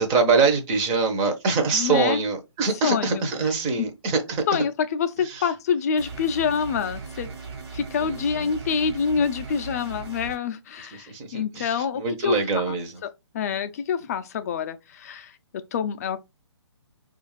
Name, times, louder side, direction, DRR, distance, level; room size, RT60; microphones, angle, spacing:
voice 1, 0.0-4.4 5.2-5.5 8.0-8.5 11.1-12.9, right 4 dB, 20° right, 0.7 m, -24 dB
voice 2, 1.7-2.2 2.8-3.2 3.8-3.9 4.5-7.3 7.7-12.8 13.3-15.3 15.7-16.2, left 6 dB, 35° left, 0.4 m, -26 dB
sound 1, 6.0-10.4, right 5 dB, 55° right, 1.2 m, -38 dB
4.8 x 2.4 x 3.1 m
figure-of-eight pair, 140°, 15 cm